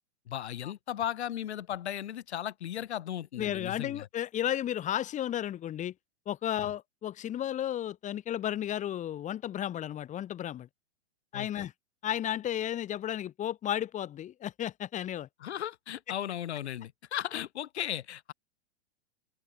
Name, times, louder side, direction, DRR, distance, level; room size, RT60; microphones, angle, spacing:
voice 1, 0.3-4.1 6.6-6.7 11.3-11.7 15.4-18.3, left 11 dB, 70° left, 5.4 m, -36 dB
voice 2, 3.4-5.9 6.3-10.7 11.3-11.7 12.0-15.3, left 11 dB, 20° left, 4.1 m, -33 dB
open air
hypercardioid pair, 145°, 34 cm